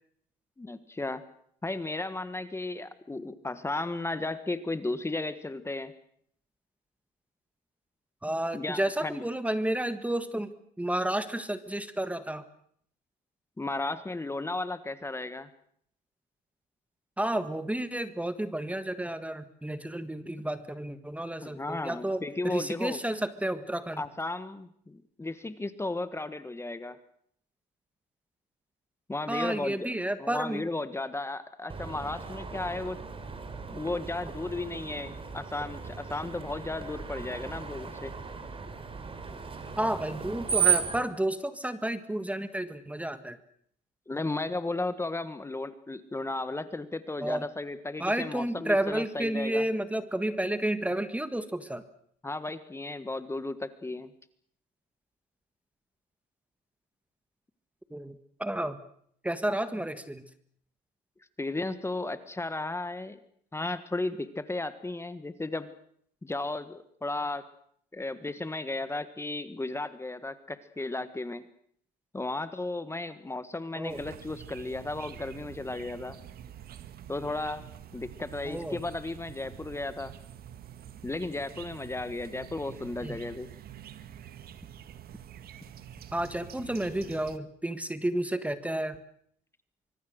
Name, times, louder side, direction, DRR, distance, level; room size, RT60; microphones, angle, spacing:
voice 1, 0.6-1.2 1.6-5.9 8.5-9.2 13.6-15.5 21.4-23.0 24.0-27.0 29.1-29.9 30.2-33.0 33.7-38.1 44.1-49.6 52.2-54.1 61.4-63.2 63.5-65.7 66.2-67.4 67.9-71.4 72.1-76.2 77.1-77.6 77.9-80.1 81.0-83.5, left 2 dB, 15° left, 12 dB, 1.5 m, -34 dB
voice 2, 8.2-10.5 10.8-12.4 17.2-24.0 29.3-30.7 39.8-43.4 47.2-47.4 48.0-51.8 57.9-58.8 59.2-60.3 73.8-74.0 78.4-78.8 83.0-83.2 86.1-89.0, right 1 dB, 10° right, 11 dB, 1.5 m, -31 dB
Screech, 31.7-41.0, right 7 dB, 30° right, 3.8 m, -34 dB
sound 1, 73.9-87.4, right 10 dB, 60° right, 1.7 m, -47 dB
24.5 x 23.0 x 6.5 m, 0.64 s
cardioid pair, 95°, 18 cm